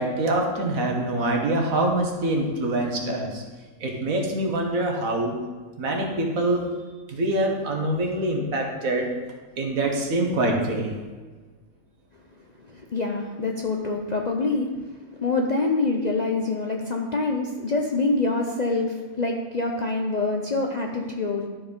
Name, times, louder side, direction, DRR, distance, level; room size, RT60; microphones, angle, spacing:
voice 1, 0.0-3.4 3.8-5.4 5.8-6.7 7.1-9.1 9.6-10.9, right 1 dB, 70° right, 1 dB, 1.7 m, -25 dB
voice 2, 12.7-14.7 15.1-21.5, left 3 dB, 45° left, 1 dB, 0.6 m, -25 dB
12.0 x 4.6 x 5.2 m, 1.4 s
omnidirectional pair, 1.5 m